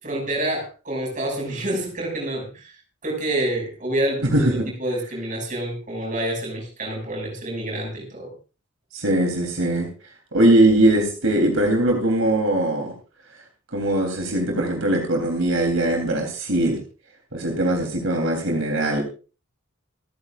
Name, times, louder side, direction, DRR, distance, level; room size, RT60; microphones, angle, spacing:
voice 1, 0.0-2.7 3.0-4.5 4.8-8.3, right 1 dB, 40° right, 1 dB, 6.3 m, -27 dB
voice 2, 4.3-4.7 8.9-9.9 10.3-12.9 13.7-16.8 17.3-19.0, right 1 dB, 75° right, 1 dB, 3.4 m, -20 dB
27.5 x 9.7 x 2.5 m, 0.35 s
head